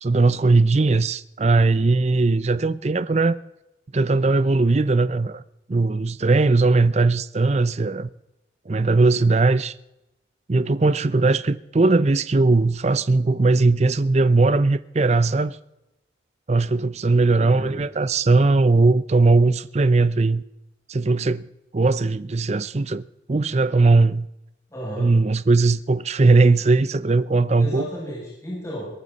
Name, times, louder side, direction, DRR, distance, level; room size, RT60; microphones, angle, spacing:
voice 1, 0.0-3.4 3.9-5.4 5.7-8.1 8.7-9.7 10.5-15.6 16.5-20.4 20.9-21.5 21.7-23.0 23.3-24.3 25.0-27.9, right 3 dB, 35° right, 0.5 m, -19 dB
voice 2, 17.4-17.8 24.7-25.1 27.6-28.9, equal, 15° left, 6.8 m, -33 dB
22.0 x 12.5 x 4.1 m
head